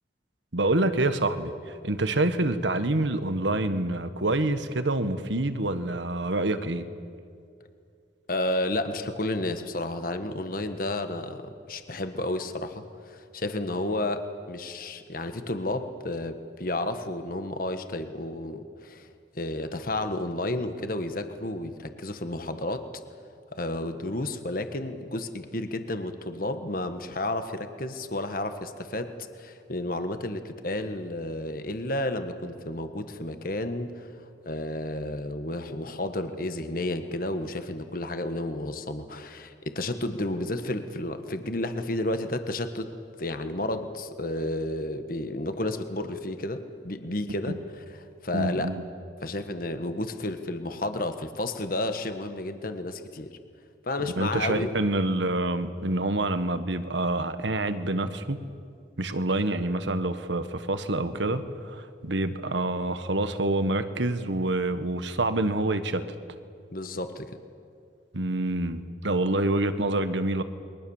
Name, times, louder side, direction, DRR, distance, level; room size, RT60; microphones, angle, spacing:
voice 1, 0.5-6.9 47.5-47.6 48.3-48.8 54.1-58.4 59.0-66.0 68.1-70.4, right 2 dB, 80° right, 10 dB, 1.5 m, -27 dB
voice 2, 8.3-19.1 19.3-22.8 23.5-34.1 34.4-42.9 43.2-48.7 49.2-53.4 53.8-54.7 66.7-67.3, left 1 dB, 50° left, 8 dB, 1.5 m, -32 dB
29.0 x 23.0 x 7.3 m, 2.3 s
head